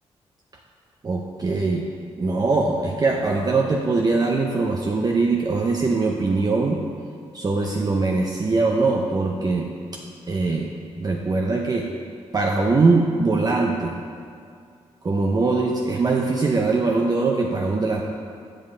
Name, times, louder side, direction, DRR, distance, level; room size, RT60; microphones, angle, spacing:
voice 1, 1.0-1.8 2.2-6.8 7.3-9.7 10.3-10.7 11.0-11.9 12.3-14.0 15.0-18.0, right 3 dB, 35° right, 0 dB, 0.6 m, -22 dB
7.5 x 6.0 x 3.8 m, 2.3 s
cardioid pair, 60°, 11 cm